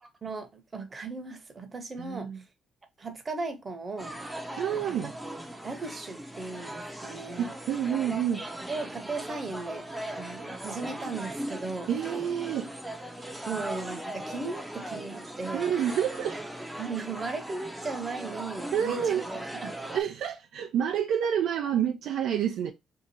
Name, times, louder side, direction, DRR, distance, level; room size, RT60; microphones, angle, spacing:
voice 1, 0.0-2.4 3.0-4.2 4.7-7.5 8.7-9.9 10.2-11.9 13.5-15.7 16.8-19.7, right 4 dB, 30° right, 0.9 m, -37 dB
voice 2, 2.0-2.4 4.6-5.1 7.4-8.5 11.9-12.7 15.5-16.4 18.7-19.3 19.9-22.7, right 9 dB, 80° right, 0.4 m, -28 dB
sound 1, 4.0-20.0, right 1 dB, 5° right, 0.6 m, -39 dB
2.8 x 2.4 x 4.1 m
cardioid pair, 90°, 0 cm